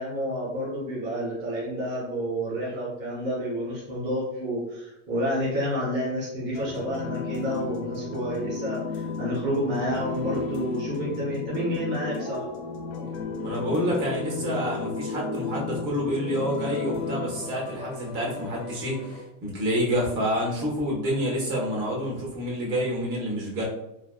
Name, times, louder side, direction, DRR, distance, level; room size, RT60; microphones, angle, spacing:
voice 1, 0.0-12.5, equal, 25° right, -7 dB, 0.8 m, -29 dB
sound 1, 6.5-19.2, left 4 dB, 40° left, 0.5 m, -34 dB
voice 2, 13.4-23.6, equal, 50° right, -3 dB, 1.2 m, -28 dB
3.2 x 2.0 x 2.2 m, 0.87 s
supercardioid pair, 145°, 40 cm